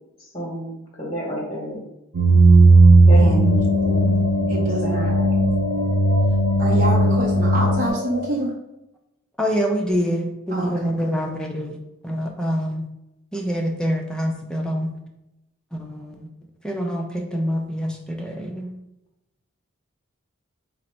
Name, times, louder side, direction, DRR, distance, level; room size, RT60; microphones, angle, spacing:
voice 1, 0.3-1.8 3.1-4.0 4.6-5.3, right 1 dB, 20° left, -3 dB, 0.9 m, -30 dB
sound 1, 2.1-7.9, right 2 dB, 80° right, 0.5 m, -16 dB
sound 2, 3.3-8.3, left 3 dB, 80° left, 0.5 m, -31 dB
voice 2, 4.5-5.1 6.6-8.5 10.5-11.3, right 1 dB, 40° right, -5 dB, 0.7 m, -26 dB
voice 3, 9.4-11.8 12.0-12.9 13.3-14.9 15.7-16.3 16.6-18.7, equal, 5° left, 1 dB, 0.4 m, -26 dB
5.0 x 2.0 x 4.4 m, 0.89 s
head